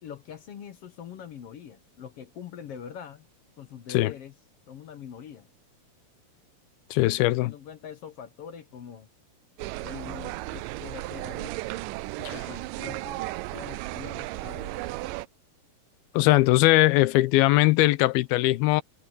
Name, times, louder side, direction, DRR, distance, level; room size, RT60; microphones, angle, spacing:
voice 1, 0.0-3.3 3.6-4.3 4.7-5.5 7.0-9.1 9.6-11.5 12.2-13.2 13.5-14.8, left 8 dB, 70° left, 1.4 m, -43 dB
voice 2, 6.9-7.5 16.1-18.8, left 18 dB, 85° left, 2.6 m, -20 dB
sound 1, 9.6-15.3, right 19 dB, 85° right, 1.9 m, -35 dB
omnidirectional pair, 4.3 m